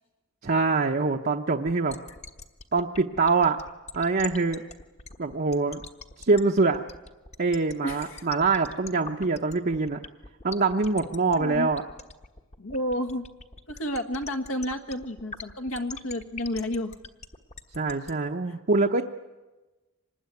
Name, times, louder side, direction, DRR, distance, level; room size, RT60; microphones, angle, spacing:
voice 1, 0.4-2.0 2.7-3.6 3.9-4.6 5.2-5.8 6.2-6.8 7.4-10.0 10.4-11.8 17.7-19.0, right 3 dB, 45° right, 2 dB, 0.8 m, -24 dB
sound 1, 1.7-18.1, left 5 dB, 30° left, 1.3 m, -42 dB
voice 2, 7.8-8.3 11.4-11.7 12.6-13.2 13.7-16.9 18.5-18.6, left 1 dB, 70° left, 7 dB, 1.8 m, -31 dB
25.5 x 20.0 x 9.5 m, 1.2 s
head